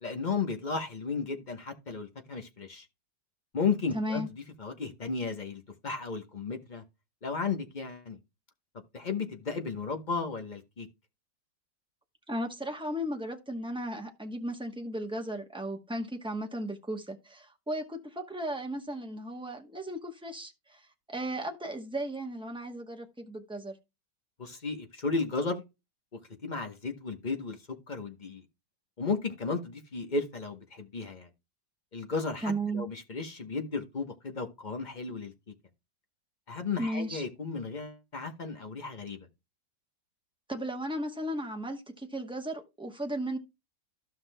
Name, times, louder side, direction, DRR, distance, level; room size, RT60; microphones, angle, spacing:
voice 1, 0.0-2.9 3.5-6.8 7.2-8.2 8.9-10.9 24.4-25.6 26.4-27.6 27.9-28.4 29.0-31.3 31.9-35.3 36.5-39.3, left 4 dB, 35° left, 0.8 m, -34 dB
voice 2, 3.9-4.3 12.3-23.8 32.4-32.8 36.8-37.2 40.5-43.4, right 1 dB, 5° right, 0.4 m, -35 dB
15.0 x 5.8 x 2.2 m
omnidirectional pair, 2.0 m